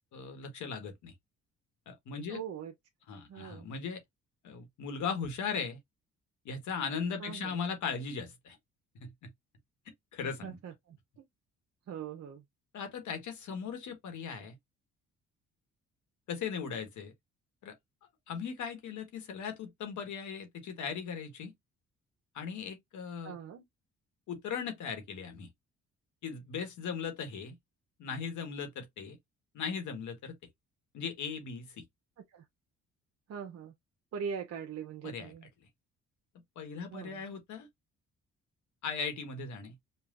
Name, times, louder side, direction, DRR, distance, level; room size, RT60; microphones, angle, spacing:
voice 1, 0.1-1.1 1.9-2.4 3.1-4.0 4.4-5.8 6.4-8.6 9.0-9.3 10.1-10.6 12.7-14.5 16.3-17.1 17.6-17.7 18.3-21.5 22.3-23.4 24.3-25.5 26.2-27.6 28.0-29.2 29.5-30.3 30.9-31.8 35.0-35.3 36.5-37.7 38.8-39.7, left 6 dB, 75° left, 1.3 m, -38 dB
voice 2, 2.3-2.7 3.3-3.7 7.2-7.6 10.2-11.3 11.9-12.4 23.2-23.6 32.3-32.4 33.3-33.7 34.1-35.5 36.9-37.2, right 7 dB, 55° right, 0.7 m, -42 dB
5.5 x 2.3 x 2.4 m
cardioid pair, 90°, 30 cm